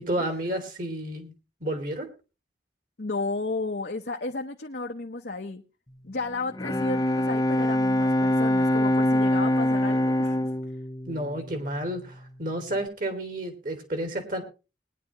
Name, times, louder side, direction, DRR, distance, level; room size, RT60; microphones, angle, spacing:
voice 1, 0.0-1.3 1.6-2.1 11.1-14.4, right 1 dB, 50° right, 6 dB, 2.6 m, -31 dB
voice 2, 3.0-5.6 6.0-10.4, left 3 dB, 60° left, 2 dB, 0.9 m, -33 dB
Bowed string instrument, 6.3-12.1, left 1 dB, 20° left, 0.7 m, -24 dB
20.5 x 10.0 x 3.0 m, 0.31 s
head